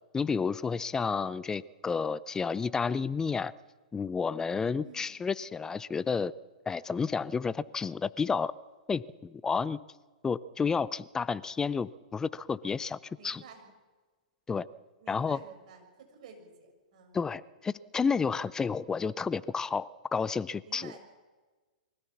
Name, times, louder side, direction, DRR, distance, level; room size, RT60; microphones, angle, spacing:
voice 1, 0.1-3.5 3.9-6.3 6.7-8.5 8.9-9.8 10.2-13.0 13.2-13.4 14.5-14.7 15.1-15.4 17.1-21.0, left 5 dB, 15° left, 20 dB, 0.5 m, -31 dB
voice 2, 4.8-5.1 13.2-13.7 15.0-17.2 20.6-21.0, right 5 dB, 55° right, 3 dB, 6.6 m, -51 dB
24.0 x 16.5 x 7.2 m, 1.3 s
hypercardioid pair, 115°, 4 cm